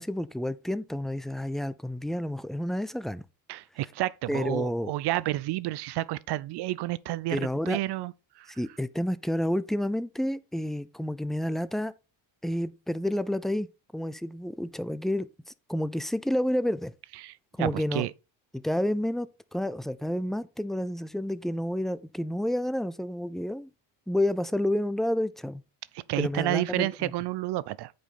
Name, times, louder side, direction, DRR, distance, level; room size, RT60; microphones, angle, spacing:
voice 1, 0.0-3.2 4.3-4.9 7.3-7.8 8.6-11.9 12.4-13.7 13.9-15.3 15.7-16.9 17.6-18.1 18.5-23.7 24.1-25.6 26.2-27.1, left 1 dB, ahead, 0.4 m, -29 dB
voice 2, 3.5-8.6 17.2-18.1 26.1-27.9, right 16 dB, 55° right, 0.6 m, -30 dB
8.8 x 5.3 x 4.2 m
supercardioid pair, 95°, 49 cm